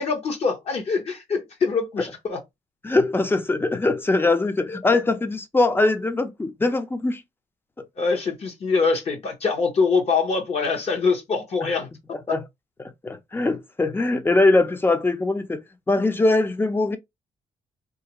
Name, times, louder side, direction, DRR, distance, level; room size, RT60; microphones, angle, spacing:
voice 1, 0.0-2.4 4.7-4.8 8.0-11.9, left 4 dB, 50° left, 0.9 m, -24 dB
voice 2, 2.8-7.2 7.8-7.9 11.6-11.7 12.1-12.4 12.8-15.6 15.9-17.0, left 2 dB, 15° left, 0.5 m, -22 dB
3.2 x 2.4 x 2.9 m
cardioid pair, 120°, 14 cm